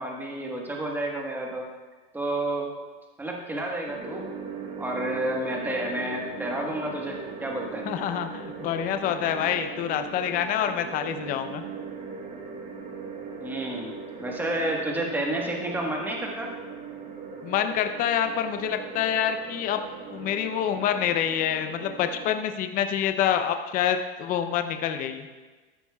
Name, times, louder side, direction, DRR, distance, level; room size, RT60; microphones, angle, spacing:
voice 1, 0.0-1.6 2.1-2.7 3.2-4.3 4.8-7.8 13.4-13.9 14.2-16.5, right 1 dB, 5° right, -1 dB, 1.4 m, -30 dB
sound 1, 3.9-22.4, right 5 dB, 25° right, 1.5 m, -39 dB
voice 2, 7.9-11.6 17.4-25.3, left 9 dB, 30° left, 7 dB, 0.6 m, -27 dB
13.0 x 9.6 x 2.3 m, 1.3 s
supercardioid pair, 140°, 30 cm